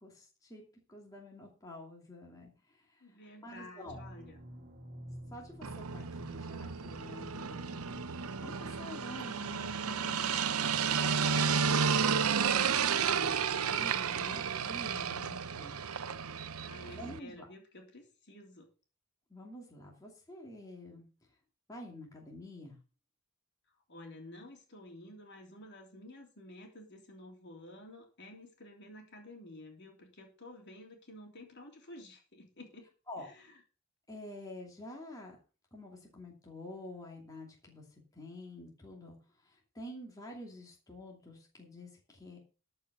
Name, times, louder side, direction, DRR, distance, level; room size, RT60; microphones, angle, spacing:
voice 1, 0.0-2.5 3.4-4.0 5.3-12.6 13.0-15.8 17.0-17.5 19.3-21.1 21.7-22.8 33.1-33.3 34.1-35.4 35.7-37.8 38.2-39.2 39.5-42.4, left 1 dB, 15° left, -1 dB, 2.7 m, -48 dB
voice 2, 3.0-4.4 16.6-18.7 23.9-32.9 33.2-33.6, left 1 dB, 50° left, 2 dB, 3.2 m, -51 dB
sound 1, 3.9-10.5, equal, 45° right, 2.2 m, -50 dB
sound 2, 5.6-17.2, right 6 dB, 75° right, 0.8 m, -32 dB
13.5 x 5.5 x 6.7 m, 0.37 s
head